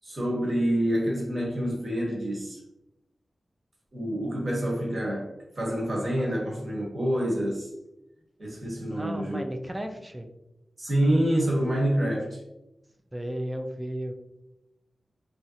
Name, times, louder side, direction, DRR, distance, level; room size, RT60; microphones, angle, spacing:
voice 1, 0.0-2.6 3.9-7.7 8.4-9.4 10.8-12.4, right 1 dB, 40° right, -3 dB, 1.0 m, -27 dB
voice 2, 9.0-10.3 13.1-14.1, equal, 10° right, 5 dB, 0.3 m, -34 dB
3.0 x 2.7 x 2.7 m, 0.90 s
wide cardioid pair, 140°, 0 cm